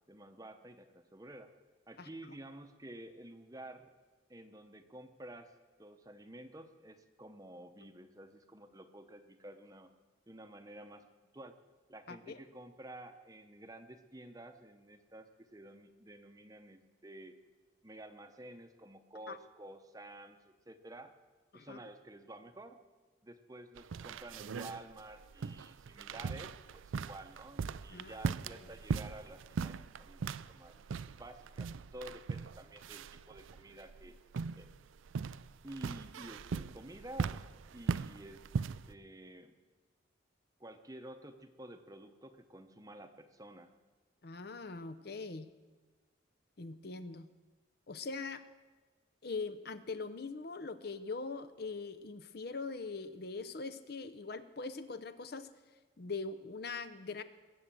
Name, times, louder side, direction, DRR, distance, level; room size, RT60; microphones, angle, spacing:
voice 1, 0.1-1.5 1.9-3.9 4.3-5.5 5.8-9.9 10.3-11.1 11.3-11.6 11.9-17.4 17.8-21.1 21.5-22.8 23.2-30.8 31.2-34.2 34.5-34.7 35.6-37.4 37.7-38.4 38.9-39.5 40.6-43.7, right 1 dB, 20° right, 8 dB, 0.8 m, -51 dB
voice 2, 12.1-12.4 19.3-19.4 21.5-21.8 27.9-28.3 44.2-45.5 46.6-47.3 47.9-48.4 49.2-55.5 56.0-57.2, left 4 dB, 55° left, 12 dB, 0.7 m, -42 dB
sound 1, 23.8-38.9, right 5 dB, 80° right, 0.4 m, -40 dB
21.5 x 7.9 x 7.5 m, 1.3 s
head